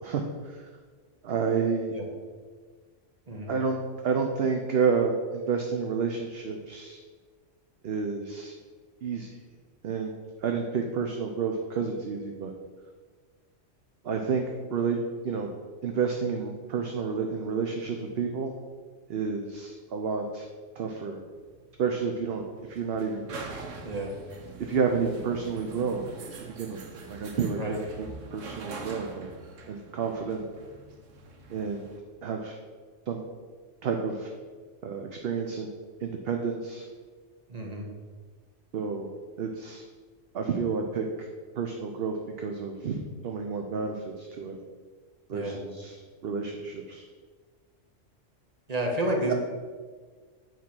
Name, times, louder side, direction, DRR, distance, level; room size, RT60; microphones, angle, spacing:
voice 1, 0.0-0.6 1.2-1.9 3.5-3.8 4.0-7.0 7.8-8.5 9.0-9.3 9.8-10.1 10.4-12.5 14.0-14.4 14.7-15.0 15.2-15.5 15.8-18.5 19.1-20.5 20.8-21.2 21.8-23.2 24.6-26.0 26.6-26.8 27.1-29.3 29.7-30.4 31.5-31.8 32.2-32.6 33.1-33.2 33.8-34.3 34.8-35.7 36.0-36.9 38.7-39.1 39.4-39.8 40.3-41.3 41.5-44.6 45.3-45.9 46.2-47.1, right 5 dB, 60° right, 3 dB, 0.8 m, -30 dB
sound 1, 21.3-32.0, right 4 dB, 80° right, 1.2 m, -44 dB
voice 2, 23.8-24.1 27.5-27.8 37.5-37.8 45.3-45.6 48.7-49.3, right 1 dB, 30° right, 0 dB, 1.4 m, -30 dB
8.4 x 4.6 x 6.0 m, 1.5 s
omnidirectional pair, 1.3 m